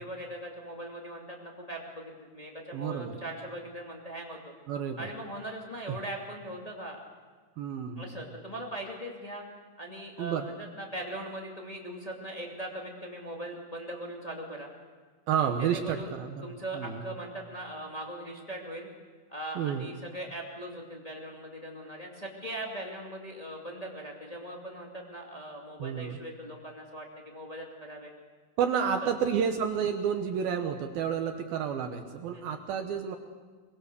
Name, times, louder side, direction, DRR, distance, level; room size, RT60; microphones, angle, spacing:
voice 1, 0.0-4.5 5.0-7.0 8.0-9.4 9.8-14.7 15.6-16.1 16.4-18.9 19.3-28.1 28.7-29.1 32.3-32.6, right 1 dB, 35° left, -1 dB, 0.5 m, -40 dB
voice 2, 2.7-3.2 4.7-5.1 5.9-6.0 7.6-8.2 10.2-10.5 15.3-17.1 19.6-19.9 25.8-26.2 28.6-33.2, right 7 dB, 75° right, 6 dB, 2.2 m, -30 dB
24.5 x 22.5 x 6.9 m, 1.5 s
omnidirectional pair, 5.6 m